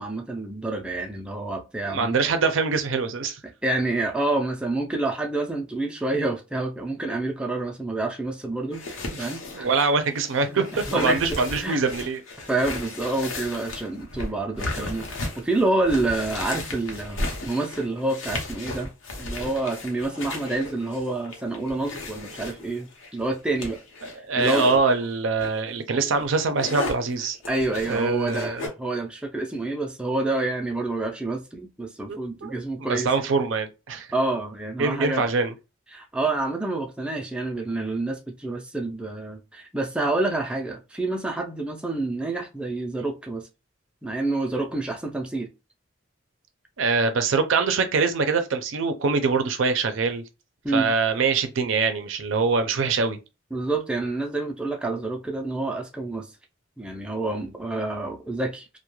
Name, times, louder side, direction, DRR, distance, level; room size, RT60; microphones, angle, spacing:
voice 1, 0.0-2.2 3.4-8.8 9.2-9.7 10.5-11.8 12.5-18.9 19.2-23.8 24.4-24.7 25.9-26.0 27.5-33.1 34.1-35.3 35.9-43.5 44.0-45.5 50.6-50.9 53.5-56.3 56.8-58.8, right 2 dB, 5° right, 0.3 m, -28 dB
voice 2, 1.9-3.4 9.2-12.2 24.0-27.4 27.8-28.7 32.1-32.5 32.8-34.1 34.8-35.5 46.8-50.2 50.7-53.2, right 4 dB, 80° right, 0.5 m, -24 dB
sound 1, 8.7-24.8 25.4-25.6 26.0-28.7, left 2 dB, 90° left, 0.8 m, -35 dB
2.2 x 2.1 x 3.0 m
head